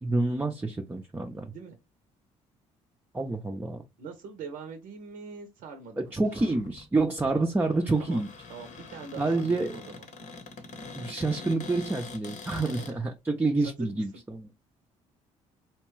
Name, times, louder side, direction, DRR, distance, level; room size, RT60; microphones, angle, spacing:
voice 1, 0.0-1.5 3.1-3.8 6.0-8.3 9.2-9.7 10.9-14.5, right 2 dB, 10° right, 0.5 m, -28 dB
voice 2, 4.0-6.1 8.0-8.2 8.5-10.0 12.5-12.9 13.8-14.0, right 5 dB, 75° right, 0.7 m, -43 dB
Cupboard open or close, 6.2-12.9, left 4 dB, 55° left, 0.8 m, -44 dB
2.8 x 2.2 x 3.1 m
hypercardioid pair, 60°, 15 cm